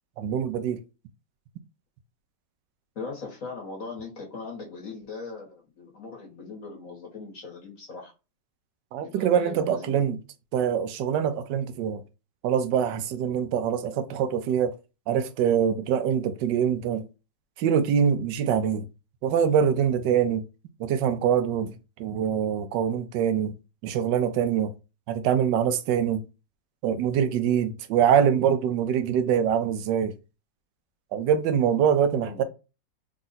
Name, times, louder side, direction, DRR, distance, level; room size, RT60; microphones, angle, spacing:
voice 1, 0.2-0.8 8.9-10.2 10.5-12.0 12.4-14.7 15.1-17.1 17.6-18.9 19.2-20.4 20.8-23.5 23.8-24.7 25.1-26.2 26.8-30.1 31.1-32.4, right 8 dB, 75° right, 1.2 m, -24 dB
voice 2, 3.0-8.1 9.0-10.0 32.2-32.4, left 4 dB, 50° left, 1.7 m, -39 dB
3.8 x 2.5 x 4.0 m
omnidirectional pair, 2.0 m